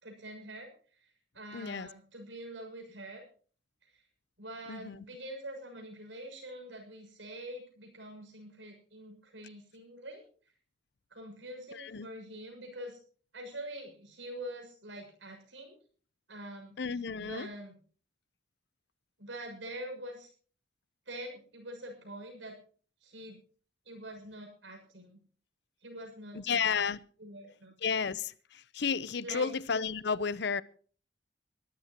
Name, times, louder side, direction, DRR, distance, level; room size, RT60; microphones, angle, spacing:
voice 1, 0.0-0.7 1.0-3.2 3.8-4.0 4.4-10.2 11.1-13.0 13.3-15.8 16.3-16.8 17.2-17.8 19.2-20.3 21.1-22.6 23.0-23.4 23.8-25.2 25.8-26.9 27.2-27.7 29.2-29.5, right 1 dB, 85° right, 3 dB, 6.4 m, -45 dB
voice 2, 1.5-1.9 4.7-5.0 11.7-12.1 16.8-17.5 26.3-27.0 27.8-30.6, left 6 dB, 65° left, 19 dB, 0.7 m, -32 dB
23.0 x 14.0 x 3.0 m, 0.42 s
head